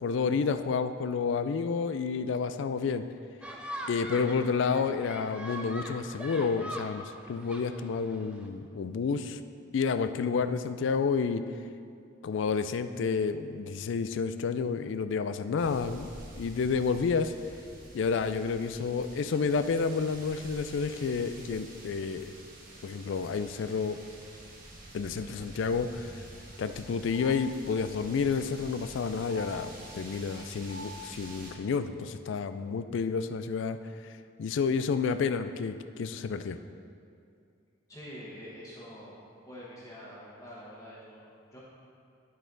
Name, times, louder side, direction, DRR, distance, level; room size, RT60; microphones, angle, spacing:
voice 1, 0.0-3.0 3.9-9.4 9.7-11.4 12.2-16.1 16.3-17.3 17.9-22.3 22.8-24.0 24.9-26.1 26.6-33.8 34.4-36.6, left 5 dB, 65° left, 10 dB, 0.3 m, -30 dB
sound 1, 3.4-8.5, equal, 5° right, 0.4 m, -42 dB
sound 2, 15.6-31.5, right 1 dB, 40° right, 1.0 m, -48 dB
sound 3, 25.8-31.2, left 1 dB, 80° left, 1.5 m, -49 dB
voice 2, 37.9-39.1 39.4-41.6, equal, 15° left, -7 dB, 1.3 m, -46 dB
11.5 x 4.1 x 3.9 m, 2.4 s
head